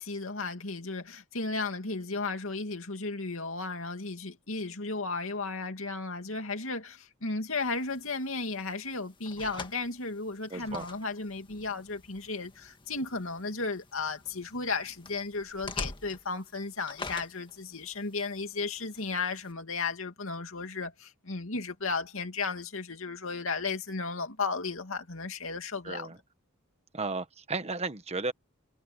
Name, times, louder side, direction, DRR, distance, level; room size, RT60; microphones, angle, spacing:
voice 1, 0.0-26.1, left 3 dB, 70° left, 2.7 m, -34 dB
sound 1, 7.6-19.5, left 3 dB, 25° left, 1.7 m, -46 dB
voice 2, 10.5-10.8 25.8-26.2 26.9-28.3, right 3 dB, 30° right, 1.3 m, -34 dB
head